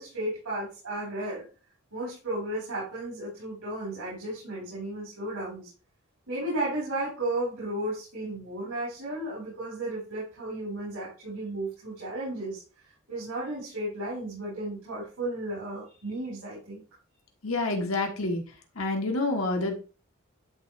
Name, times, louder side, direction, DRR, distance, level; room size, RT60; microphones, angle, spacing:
voice 1, 0.0-1.4 1.9-5.7 6.3-12.6 13.1-16.8, right 1 dB, 80° right, -7 dB, 4.5 m, -34 dB
voice 2, 17.4-18.4 18.7-19.8, left 2 dB, 70° left, 2 dB, 1.6 m, -28 dB
11.5 x 3.9 x 3.3 m, 0.35 s
head